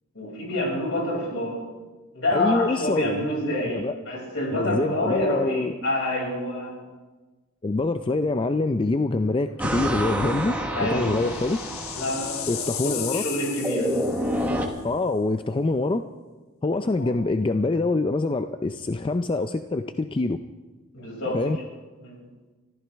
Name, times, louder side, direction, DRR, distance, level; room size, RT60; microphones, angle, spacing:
voice 1, 0.1-1.6 2.1-6.8 10.7-11.1 11.9-14.0 17.0-17.1 20.9-21.6 22.0-22.2, left 1 dB, 65° left, -2 dB, 5.9 m, -27 dB
voice 2, 2.3-3.9 4.5-5.7 7.6-10.5 10.8-11.6 12.5-13.2 14.8-16.0 16.6-20.4 21.3-21.6, left 2 dB, 25° left, 9 dB, 0.4 m, -25 dB
sound 1, 9.6-14.7, equal, 5° right, 1.2 m, -29 dB
sound 2, 10.2-14.7, left 10 dB, 80° left, 1.1 m, -36 dB
24.0 x 14.5 x 3.4 m, 1.3 s
head